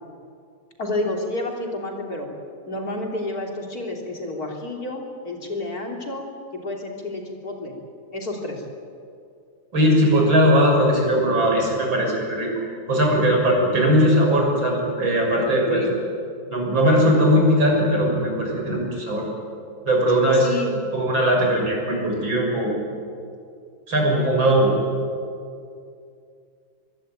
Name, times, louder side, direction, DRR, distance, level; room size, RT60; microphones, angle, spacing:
voice 1, 0.8-2.3 2.7-6.3 6.5-7.7 8.1-8.6 13.6-14.0 15.7-15.9 20.3-20.8 21.3-21.5, left 2 dB, 50° left, 0 dB, 3.9 m, -30 dB
voice 2, 9.7-12.5 12.9-15.8 16.5-19.2 19.9-20.5 20.9-22.9 23.9-24.7, equal, 80° right, 0 dB, 7.3 m, -19 dB
24.0 x 23.5 x 9.1 m, 2.4 s
omnidirectional pair, 2.1 m